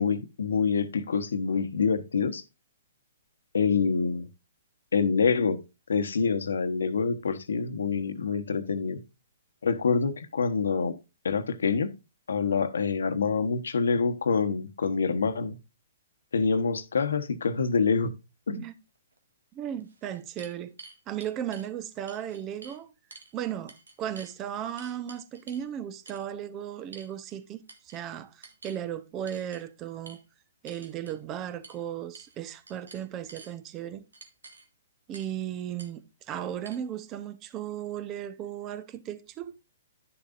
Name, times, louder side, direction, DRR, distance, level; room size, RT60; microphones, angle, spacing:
voice 1, 0.0-2.4 3.5-4.3 4.9-5.6 5.9-9.0 9.6-10.9 11.2-11.9 12.3-15.6 16.3-18.1 18.5-18.6, left 5 dB, 80° left, 1.1 m, -26 dB
sound 1, 19.2-19.3 19.8-21.7 22.1-22.8 23.1-23.3 23.7-24.3 24.8-25.7 26.1-26.3 26.9-27.4 27.7-28.0 28.4-28.8 29.3-29.6 30.1-30.2 30.7-31.2 31.6-31.8 32.1-32.4 32.7-33.5 34.1-34.7 35.1-35.4 35.8-35.9 36.7-36.8, right 3 dB, 90° right, 2.0 m, -49 dB
voice 2, 19.5-20.7 21.1-22.9 23.3-30.2 30.6-34.0 35.1-39.5, right 10 dB, 25° right, 0.9 m, -36 dB
11.0 x 7.1 x 2.5 m
hypercardioid pair, 140°, 0 cm